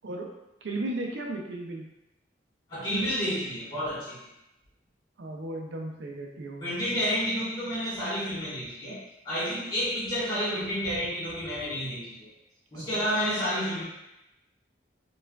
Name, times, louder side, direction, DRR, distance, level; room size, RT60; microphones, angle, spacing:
voice 1, 0.6-1.9 5.2-6.9 12.7-13.1, right 2 dB, 80° right, 1 dB, 0.5 m, -36 dB
voice 2, 2.7-4.2 6.6-12.3 12.7-13.8, equal, 25° left, -10 dB, 1.4 m, -30 dB
4.4 x 2.4 x 2.3 m, 0.91 s
head